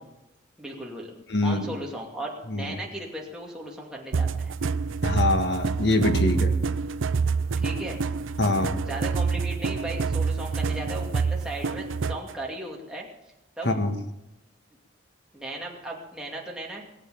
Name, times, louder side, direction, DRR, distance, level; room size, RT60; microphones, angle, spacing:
voice 1, 0.6-1.1 1.4-4.5 7.6-8.0 8.9-13.1 13.6-13.7 15.3-16.8, right 1 dB, 5° right, -3 dB, 2.5 m, -36 dB
voice 2, 1.3-1.7 2.5-2.7 5.0-6.5 8.4-8.8 13.6-13.9, left 2 dB, 60° left, 6 dB, 1.7 m, -24 dB
sound 1, 4.1-12.3, right 5 dB, 85° right, 0.5 m, -27 dB
20.5 x 8.0 x 7.7 m, 0.95 s
head